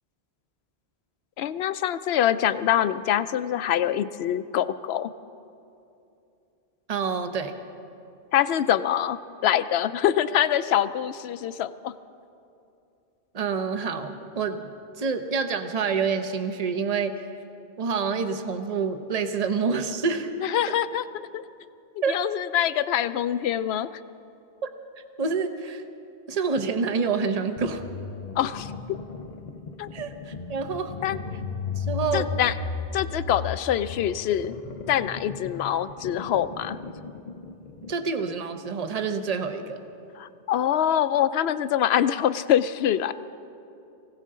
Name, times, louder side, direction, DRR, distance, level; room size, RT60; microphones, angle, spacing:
voice 1, 1.4-5.1 8.3-11.9 20.4-21.4 22.1-23.9 28.4-29.0 29.8-29.9 31.0-31.2 32.1-32.5 32.9-34.6 34.9-36.8 40.2-43.1, left 10 dB, 85° left, 13 dB, 0.8 m, -25 dB
voice 2, 6.9-7.5 13.3-14.7 15.0-17.3 17.8-20.3 22.0-22.2 24.6-24.7 25.2-25.8 26.3-27.8 29.9-30.9 31.8-32.3 37.9-39.8, right 5 dB, 40° right, 8 dB, 0.9 m, -27 dB
sound 1, 27.6-38.0, left 5 dB, 45° left, 0.8 m, -36 dB
23.5 x 16.5 x 3.7 m, 2.7 s
omnidirectional pair, 1.0 m